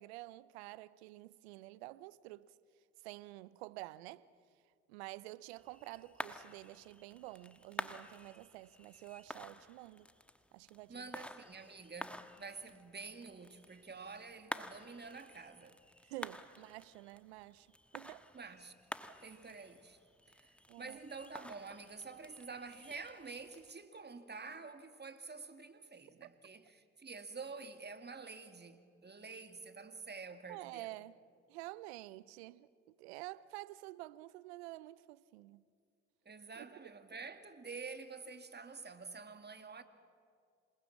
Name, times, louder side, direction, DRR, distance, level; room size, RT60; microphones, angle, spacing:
voice 1, 0.0-2.5 3.0-4.3 4.9-10.1 10.5-11.1 16.0-17.7 17.9-18.3 20.7-21.0 30.5-31.1 31.5-35.6 36.6-36.7, right 18 dB, 85° right, 0.6 m, -49 dB
sound 1, 5.6-23.7, left 1 dB, 5° left, 1.4 m, -50 dB
voice 2, 10.9-15.8 18.3-18.7 19.2-20.0 20.3-30.9 36.3-39.8, right 4 dB, 30° right, 2.2 m, -49 dB
27.5 x 19.5 x 7.4 m
hypercardioid pair, 45°, 31 cm